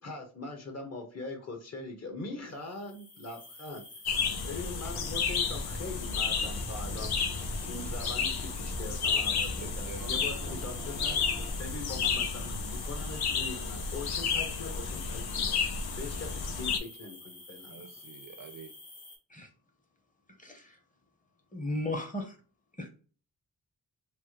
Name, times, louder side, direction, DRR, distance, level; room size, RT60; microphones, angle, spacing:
voice 1, 0.0-3.8 4.4-7.2 7.7-11.2 11.6-15.6 16.0-17.8, left 2 dB, 45° left, 3 dB, 1.0 m, -42 dB
sound 1, 2.6-19.2, left 2 dB, 65° left, 1.3 m, -50 dB
sound 2, 4.1-16.8, left 5 dB, 85° left, 0.6 m, -32 dB
sound 3, 4.8-11.5, left 1 dB, 5° left, 0.4 m, -44 dB
voice 2, 9.6-11.8 17.7-18.7, right 7 dB, 60° right, 9 dB, 0.5 m, -49 dB
voice 3, 20.4-20.8 21.5-22.4 22.8-22.9, left 1 dB, 20° left, 5 dB, 0.8 m, -35 dB
3.3 x 2.1 x 2.9 m, 0.39 s
wide cardioid pair, 100°, 37 cm